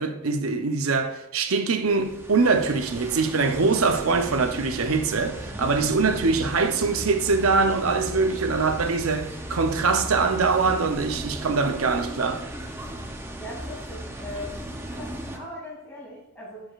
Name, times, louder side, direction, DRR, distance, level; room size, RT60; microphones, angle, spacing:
voice 1, 0.0-12.4, right 4 dB, 85° right, 0.7 m, -23 dB
sound 1, 1.8-15.4, right 1 dB, 10° right, 0.6 m, -36 dB
voice 2, 5.4-6.1 8.6-8.9 13.4-16.6, left 1 dB, 10° left, 2.9 m, -40 dB
12.5 x 4.9 x 2.4 m
head